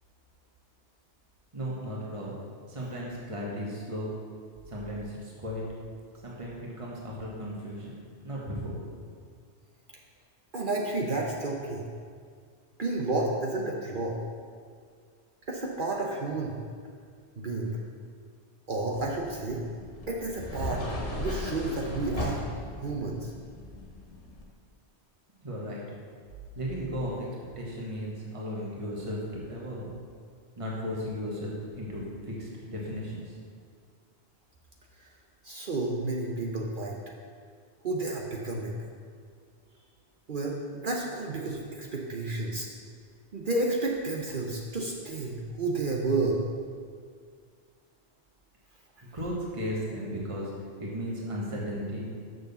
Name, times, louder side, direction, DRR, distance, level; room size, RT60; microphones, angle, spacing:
voice 1, 1.5-2.3 2.7-4.1 4.7-5.6 6.2-7.9 8.2-8.8 25.4-25.8 26.5-27.3 27.6-29.9 30.6-33.4 49.0-50.5 50.8-52.1, equal, 30° right, -4 dB, 1.5 m, -35 dB
voice 2, 10.5-11.8 12.8-14.2 15.5-16.6 17.4-17.8 18.7-19.6 20.1-20.9 21.2-22.5 22.8-23.3 35.0-35.1 35.4-37.0 37.8-38.7 40.3-42.7 43.3-46.4, right 2 dB, 50° right, -1 dB, 0.9 m, -31 dB
sound 1, 18.9-24.4, left 1 dB, 90° left, 1.8 m, -37 dB
6.7 x 6.3 x 6.9 m, 2.1 s
omnidirectional pair, 1.2 m